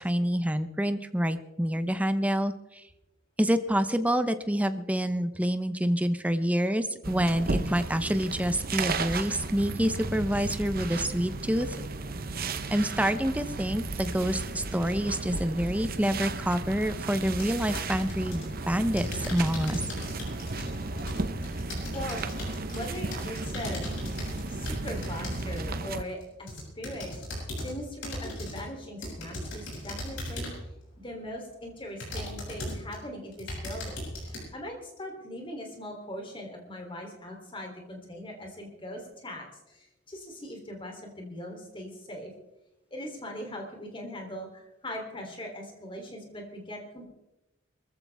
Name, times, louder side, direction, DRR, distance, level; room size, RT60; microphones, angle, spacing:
voice 1, 0.0-2.8 3.4-11.8 12.7-19.8, equal, 5° right, 10 dB, 0.8 m, -27 dB
sound 1, 7.0-26.0, right 3 dB, 45° right, 0.9 m, -34 dB
sound 2, 13.9-15.4 18.6-20.4 24.2-25.9, right 1 dB, 85° right, 2.1 m, -43 dB
sound 3, 17.3-18.5 19.0-25.7 26.2-27.7 28.0-28.7 29.0-30.7 31.3-31.4 32.0-33.0 33.3-34.4, left 1 dB, 60° left, 7.4 m, -38 dB
voice 2, 21.9-22.2 22.7-23.9 24.5-27.1 27.6-30.6 31.0-42.3 42.9-47.1, left 1 dB, 25° left, 2 dB, 3.3 m, -40 dB
23.0 x 14.5 x 3.5 m, 0.96 s
head